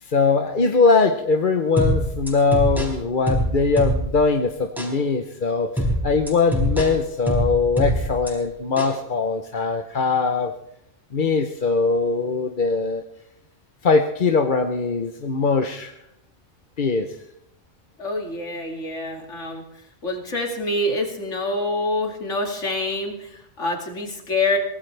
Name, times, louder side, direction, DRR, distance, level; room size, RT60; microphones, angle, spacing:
voice 1, 0.0-10.5 11.1-13.0 13.8-15.9 16.8-17.1, left 4 dB, 45° left, 5 dB, 0.9 m, -21 dB
sound 1, 1.8-4.3 4.8-5.0 5.8-8.3 8.8-9.0, equal, ahead, 4.4 m, -24 dB
voice 2, 18.0-19.6 20.0-24.6, left 2 dB, 75° left, 1 dB, 2.9 m, -26 dB
23.5 x 17.5 x 3.4 m, 0.80 s
omnidirectional pair, 1.3 m